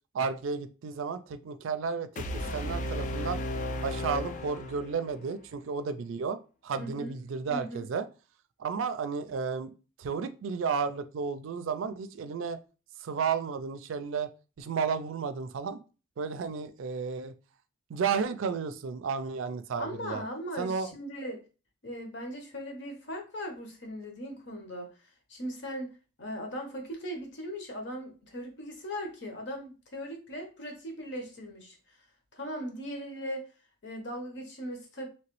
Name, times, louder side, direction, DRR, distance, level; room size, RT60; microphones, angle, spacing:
voice 1, 0.1-2.1 2.3-3.4 3.8-6.4 6.6-8.1 8.6-9.7 10.0-12.6 13.0-14.3 14.6-15.8 16.2-17.3 17.9-20.2 20.6-20.9, right 5 dB, 85° right, 12 dB, 0.4 m, -32 dB
sound 1, 2.2-5.2, left 1 dB, 40° left, 0.3 m, -34 dB
voice 2, 6.8-7.1 7.5-7.8 19.8-21.4 21.8-24.9 25.3-25.9 26.2-31.8 32.3-33.5 33.8-35.1, equal, 65° left, 3 dB, 0.9 m, -38 dB
3.1 x 2.9 x 3.0 m, 0.34 s
head